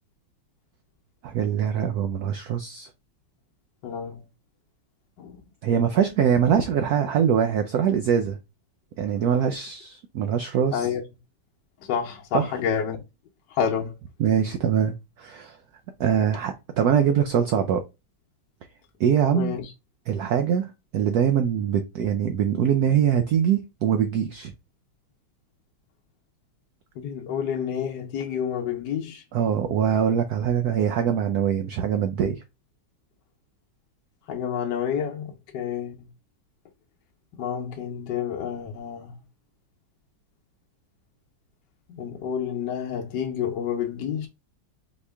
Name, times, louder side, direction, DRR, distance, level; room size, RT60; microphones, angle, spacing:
voice 1, 1.2-2.9 5.6-8.4 9.0-10.9 12.3-12.5 14.2-15.6 16.0-17.8 19.0-19.6 20.1-24.5 29.3-32.4, right 8 dB, 70° right, 0.9 m, -23 dB
voice 2, 3.8-4.2 5.2-5.4 10.7-11.0 11.8-13.0 13.5-13.9 19.3-19.7 27.0-29.2 34.3-36.1 37.4-39.1 41.9-44.3, left 8 dB, 70° left, 1.3 m, -29 dB
4.3 x 3.1 x 3.4 m
omnidirectional pair, 2.1 m